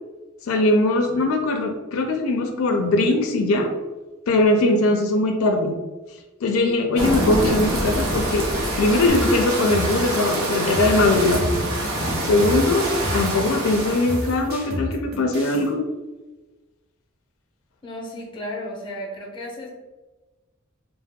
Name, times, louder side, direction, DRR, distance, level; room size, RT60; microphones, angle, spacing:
voice 1, 0.5-3.7 4.3-5.8 6.4-8.5 8.8-11.4 12.3-12.9 13.1-15.8, left 2 dB, 80° left, 4 dB, 0.4 m, -20 dB
sound 1, 7.0-14.3, right 1 dB, 90° right, 0.7 m, -25 dB
sound 2, 9.1-15.7, equal, 50° right, 0.7 m, -32 dB
voice 2, 17.8-19.7, left 1 dB, 25° left, 0 dB, 0.6 m, -34 dB
2.8 x 2.0 x 3.5 m, 1.2 s
head